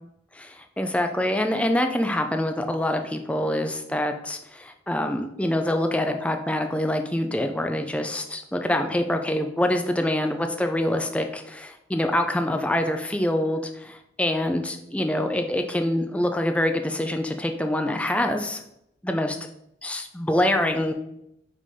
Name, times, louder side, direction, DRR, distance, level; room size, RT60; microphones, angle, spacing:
voice 1, 0.3-18.6 19.0-19.4 19.8-20.9, left 1 dB, 5° left, 5 dB, 0.4 m, -25 dB
5.3 x 3.4 x 5.3 m, 0.79 s
head